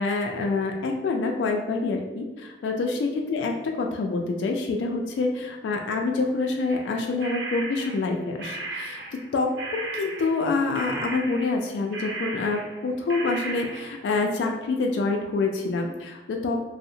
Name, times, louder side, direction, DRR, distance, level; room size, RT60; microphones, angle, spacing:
voice 1, 0.0-9.0 9.3-16.7, left 3 dB, 85° left, 3 dB, 0.3 m, -26 dB
sound 1, 6.7-9.3 9.6-12.8 13.1-14.0, right 3 dB, 80° right, 0.4 m, -36 dB
2.7 x 2.0 x 2.6 m, 1.1 s
head